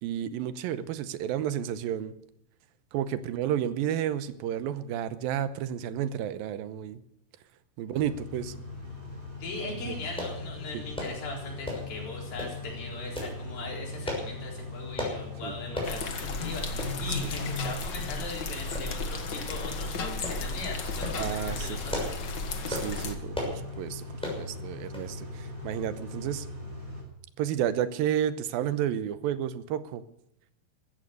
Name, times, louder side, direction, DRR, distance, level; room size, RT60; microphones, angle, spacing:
voice 1, 0.0-2.1 2.9-7.0 7.8-8.5 9.7-9.9 10.7-10.8 15.4-15.5 21.2-21.8 22.7-24.0 24.4-26.5 27.4-30.0, right 10 dB, 90° right, 13 dB, 2.7 m, -31 dB
Car / Idling / Accelerating revving vroom, 7.9-27.0, left 2 dB, 20° right, 7.1 m, -39 dB
voice 2, 9.4-22.1, left 3 dB, 85° left, -1 dB, 5.9 m, -40 dB
sound 1, 10.2-10.4 10.9-11.2 11.6-11.9 12.4-12.6 13.1-13.4 14.0-14.3 15.0-15.2 15.7-16.0 16.3-16.4 16.8-16.9 17.6-17.8 18.7-19.1 19.5-19.6 20.2-20.4 20.9-21.2 21.7-22.2 22.7-22.9 23.3-23.6 24.2-24.4 24.9-25.1 25.4-25.5, left 1 dB, ahead, 6.1 m, -34 dB
sound 2, 15.8-23.2, left 4 dB, 45° left, 1.5 m, -35 dB
15.5 x 14.0 x 6.6 m, 0.78 s
omnidirectional pair, 4.1 m